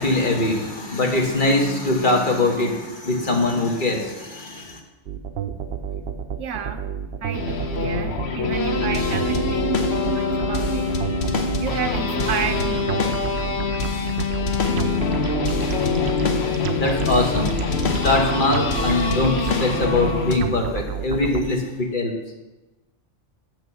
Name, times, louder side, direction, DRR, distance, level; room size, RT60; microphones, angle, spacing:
voice 1, 0.0-4.8 16.7-17.5 17.8-22.1, left 2 dB, 45° left, 1 dB, 1.4 m, -22 dB
sound 1, 5.1-21.4, right 8 dB, 65° right, 0.9 m, -30 dB
voice 2, 6.4-6.9 7.2-10.9 11.6-13.2, right 7 dB, 85° right, 9 dB, 1.1 m, -31 dB
sound 2, 7.3-20.4, left 4 dB, 65° left, 1.1 m, -24 dB
6.5 x 6.2 x 6.8 m, 1.1 s
omnidirectional pair, 1.2 m